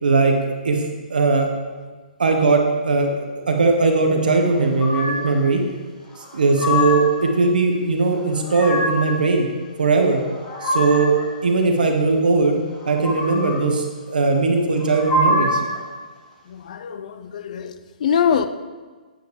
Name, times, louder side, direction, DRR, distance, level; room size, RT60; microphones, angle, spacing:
voice 1, 0.0-1.5 2.2-5.6 6.3-9.5 9.8-10.2 10.6-11.1 11.4-12.6 12.8-15.6, right 3 dB, 70° right, 1.6 m, -19 dB
sound 1, 4.8-5.4 6.2-7.2 8.2-9.2 10.1-11.2 12.8-13.6 14.8-15.8, left 1 dB, 25° left, 2.2 m, -24 dB
voice 2, 16.5-18.5, left 7 dB, 55° left, 0.6 m, -23 dB
10.0 x 7.9 x 3.5 m
figure-of-eight pair, 130°, 5 cm